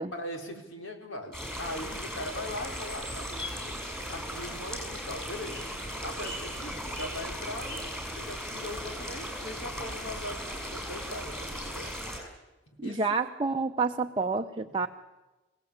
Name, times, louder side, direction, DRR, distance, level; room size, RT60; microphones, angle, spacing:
voice 1, 0.1-3.7 4.1-5.7 6.0-7.8 8.2-11.9 12.8-13.2 14.6-14.9, left 1 dB, 80° left, 3 dB, 4.3 m, -40 dB
sound 1, 1.3-12.2, equal, ahead, 6.3 m, -37 dB
voice 2, 12.8-14.9, right 4 dB, 25° right, 4 dB, 0.7 m, -29 dB
26.5 x 17.5 x 8.8 m, 1.1 s
head